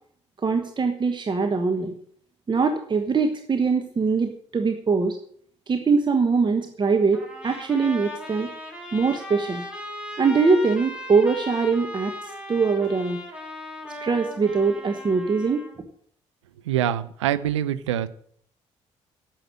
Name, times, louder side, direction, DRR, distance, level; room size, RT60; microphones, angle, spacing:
voice 1, 0.4-1.9 2.5-5.2 5.7-8.5 8.9-9.6 10.2-13.2 14.0-15.6, right 4 dB, 30° right, 6 dB, 1.3 m, -22 dB
Trumpet, 7.1-15.8, left 1 dB, 5° right, 5.1 m, -37 dB
voice 2, 16.7-18.1, right 11 dB, 75° right, 12 dB, 0.6 m, -24 dB
11.5 x 7.8 x 8.3 m, 0.63 s
figure-of-eight pair, 45°, 15 cm